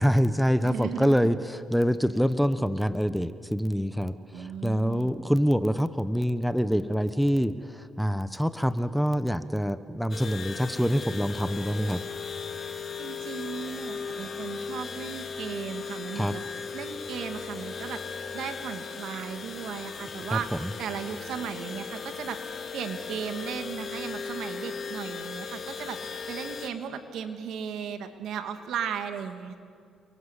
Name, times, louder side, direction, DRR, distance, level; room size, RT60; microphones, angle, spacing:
voice 1, 0.0-12.0 16.2-16.4 20.3-20.7, equal, ahead, 12 dB, 1.1 m, -26 dB
voice 2, 0.6-1.3 4.3-5.2 12.6-16.4 16.7-20.5 20.8-22.4 22.7-29.6, right 7 dB, 75° right, 7 dB, 2.4 m, -36 dB
sound 1, 10.1-26.7, left 5 dB, 45° left, 2.5 m, -37 dB
30.0 x 23.5 x 8.3 m, 2.3 s
cardioid pair, 90°, 0 cm